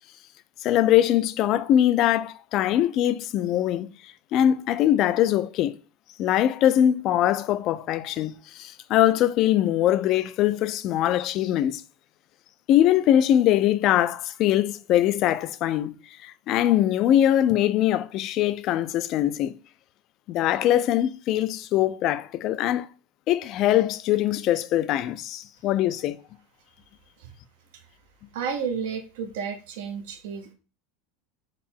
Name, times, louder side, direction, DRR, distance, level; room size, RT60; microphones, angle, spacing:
voice 1, 0.6-3.9 4.3-5.8 6.2-11.8 12.7-16.0 16.2-19.6 20.3-22.9 23.3-26.2, left 12 dB, 50° left, 0.3 m, -22 dB
voice 2, 28.3-30.5, right 6 dB, 75° right, 0.6 m, -32 dB
3.7 x 2.0 x 4.3 m
supercardioid pair, 105°, 0 cm